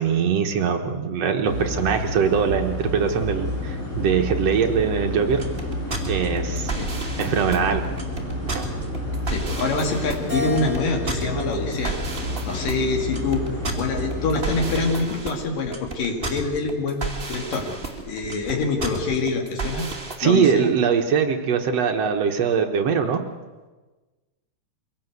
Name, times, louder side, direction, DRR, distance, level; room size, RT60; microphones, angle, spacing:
voice 1, 0.0-5.4 6.1-6.7 7.2-7.9 8.5-8.7 20.2-23.2, right 7 dB, 60° right, 5 dB, 2.0 m, -22 dB
sound 1, 1.4-14.9, left 1 dB, 50° left, 9.0 m, -30 dB
sound 2, 5.3-20.2, right 3 dB, 20° right, 2.2 m, -32 dB
voice 2, 9.3-12.0 12.5-13.5 13.8-17.7 18.1-19.9 20.2-20.7, left 3 dB, 85° left, 2 dB, 4.0 m, -25 dB
Keyboard (musical), 10.3-12.8 13.4-14.6, left 1 dB, 30° left, 4.2 m, -36 dB
23.5 x 17.0 x 8.0 m, 1.2 s
omnidirectional pair, 3.8 m